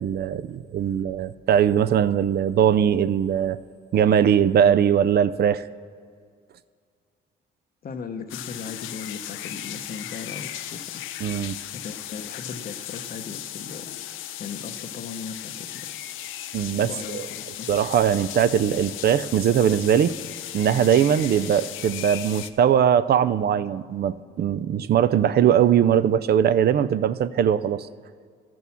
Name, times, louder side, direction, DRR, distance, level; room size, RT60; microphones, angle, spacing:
voice 1, 0.0-3.6 3.9-5.6 11.2-11.6 16.5-17.3 17.7-20.1 20.5-27.9, right 9 dB, 55° right, 14 dB, 0.4 m, -20 dB
voice 2, 7.8-11.0 11.7-14.0 14.4-15.9 16.8-17.7, left 5 dB, 50° left, 7 dB, 0.8 m, -37 dB
sound 1, 8.3-22.5, left 12 dB, 85° left, 0.6 m, -36 dB
12.5 x 6.1 x 7.0 m, 2.1 s
cardioid pair, 90°, 20 cm